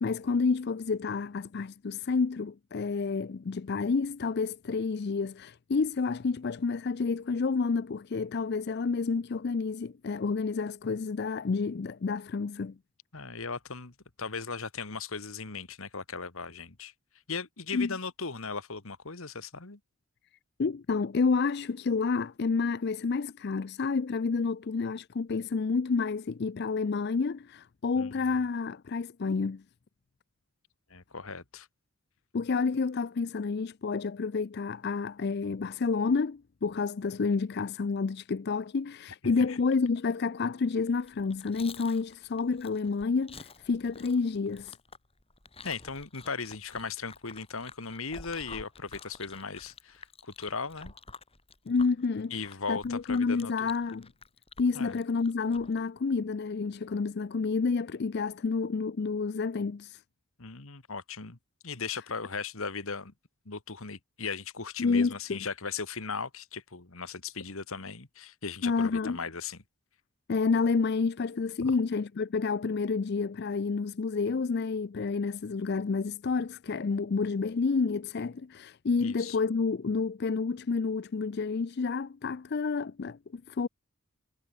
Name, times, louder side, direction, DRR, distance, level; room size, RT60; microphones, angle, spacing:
voice 1, 0.0-12.7 17.7-17.9 20.6-29.6 32.3-44.8 51.7-52.3 52.7-54.1 54.6-60.0 64.8-65.4 68.6-69.2 70.3-83.7, left 4 dB, 50° left, 0.4 m, -29 dB
voice 2, 13.1-16.9 17.3-19.8 28.0-28.2 30.9-31.7 39.4-39.6 45.6-50.9 52.3-53.7 54.8-55.0 60.4-61.4 61.6-63.1 63.5-69.6 71.6-71.8 79.0-79.4, left 4 dB, 70° left, 1.8 m, -37 dB
Chewing mastication, 41.0-55.8, left 4 dB, 25° left, 6.5 m, -50 dB
head